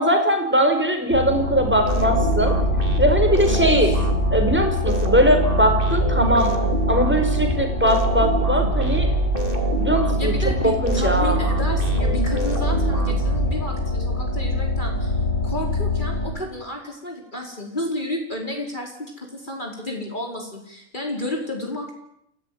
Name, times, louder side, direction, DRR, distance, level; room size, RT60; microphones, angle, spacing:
voice 1, 0.0-2.5 3.0-3.9 4.3-6.5 6.9-9.2 9.8-10.3 10.6-11.4, equal, 10° right, 5 dB, 4.9 m, -20 dB
sound 1, 1.1-16.3, left 3 dB, 75° left, 7.3 m, -26 dB
sound 2, 1.9-14.1, right 2 dB, 40° right, 3.6 m, -23 dB
voice 2, 3.5-3.9 9.5-9.6 10.2-15.2 15.4-21.9, left 1 dB, 35° left, 1 dB, 5.2 m, -31 dB
28.5 x 17.0 x 9.6 m, 0.75 s
omnidirectional pair, 1.5 m